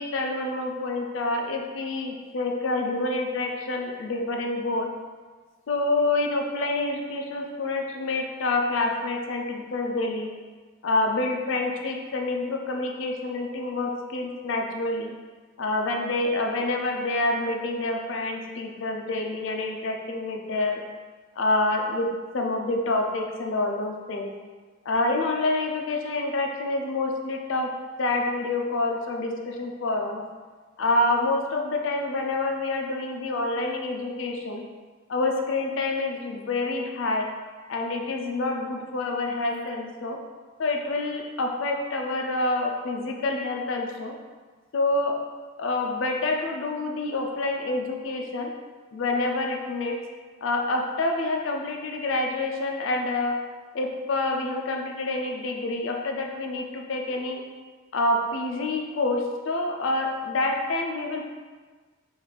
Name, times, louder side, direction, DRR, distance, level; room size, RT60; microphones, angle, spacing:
voice 1, 0.0-4.9 5.7-10.3 10.8-15.1 15.6-20.8 21.4-22.1 22.3-24.3 24.9-27.7 28.0-30.2 30.8-34.6 35.1-37.3 37.7-40.2 40.6-44.1 44.7-45.3 45.6-48.5 48.9-50.0 50.4-53.3 53.7-57.4 57.9-61.3, left 2 dB, 65° left, 2 dB, 0.4 m, -27 dB
3.9 x 2.5 x 3.3 m, 1.4 s
head